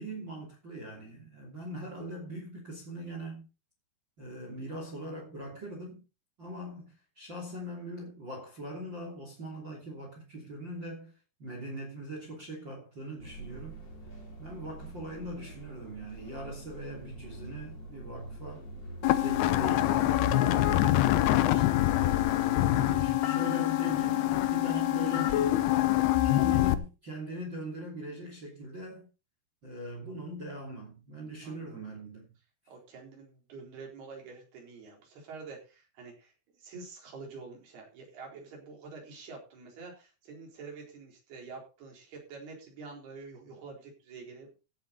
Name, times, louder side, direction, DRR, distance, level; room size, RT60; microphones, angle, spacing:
voice 1, 0.0-3.4 4.2-6.0 6.4-11.1 11.4-13.8 14.4-18.6 19.1-22.2 22.7-25.8 26.2-29.1 29.6-32.3, right 1 dB, 30° right, 3.0 m, -41 dB
sound 1, 13.2-19.8, right 2 dB, 30° left, 2.8 m, -45 dB
sound 2, 19.0-26.7, left 14 dB, 75° left, 2.6 m, -25 dB
voice 2, 31.4-31.8 32.7-36.3 36.6-44.5, right 4 dB, 65° right, 6.1 m, -47 dB
15.5 x 8.3 x 4.1 m
omnidirectional pair, 5.0 m